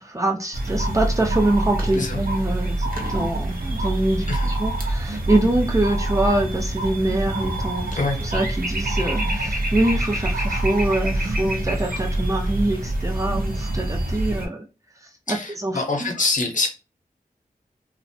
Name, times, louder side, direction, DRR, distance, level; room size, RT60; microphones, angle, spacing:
voice 1, 0.0-7.9 8.2-14.7 15.3-16.1, right 1 dB, 20° right, 0.5 m, -24 dB
sound 1, 0.5-14.5, right 1 dB, 70° right, 0.6 m, -25 dB
voice 2, 15.3-16.7, left 3 dB, 55° left, 0.7 m, -25 dB
2.5 x 2.0 x 2.7 m
wide cardioid pair, 90°, 15 cm